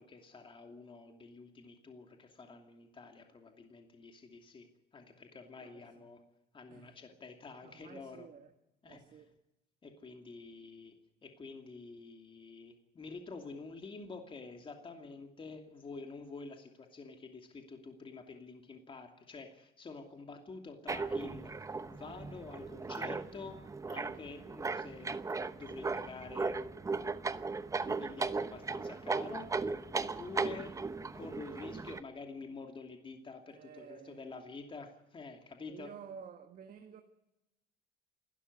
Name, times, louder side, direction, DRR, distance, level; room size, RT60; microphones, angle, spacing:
voice 1, 0.0-6.2 6.5-8.3 8.8-9.0 9.8-11.0 11.2-25.2 25.5-26.6 27.8-29.5 29.9-30.8 31.1-35.9, left 4 dB, 25° left, 2.7 m, -48 dB
voice 2, 5.6-6.2 6.7-7.0 7.6-8.5 8.8-9.3 33.5-34.4 35.7-37.0, right 7 dB, 45° right, 1.7 m, -52 dB
sound 1, 20.9-32.0, right 4 dB, 15° right, 0.9 m, -37 dB
28.0 x 13.0 x 9.7 m
cardioid pair, 125°, 20 cm